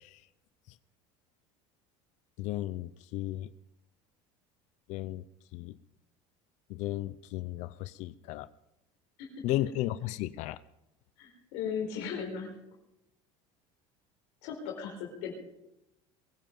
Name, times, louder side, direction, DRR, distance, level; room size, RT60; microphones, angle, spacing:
voice 1, 2.4-3.5 4.9-5.2 5.5-5.7 6.8-8.5 9.4-10.6, left 15 dB, 65° left, 15 dB, 0.5 m, -34 dB
voice 2, 11.2-12.5 14.4-15.3, left 7 dB, 80° left, 1 dB, 4.3 m, -37 dB
22.5 x 10.5 x 5.4 m, 0.90 s
supercardioid pair, 120°, 13 cm